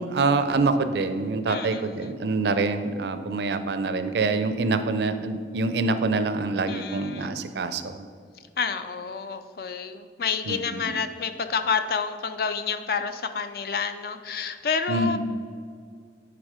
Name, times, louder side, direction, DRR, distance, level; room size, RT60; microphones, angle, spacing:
voice 1, 0.0-8.0 10.5-10.9 14.9-15.2, right 3 dB, 70° right, 10 dB, 0.4 m, -25 dB
voice 2, 1.5-2.1 6.7-7.4 8.6-15.2, left 5 dB, 55° left, 9 dB, 0.4 m, -29 dB
9.9 x 3.5 x 4.9 m, 2.1 s
head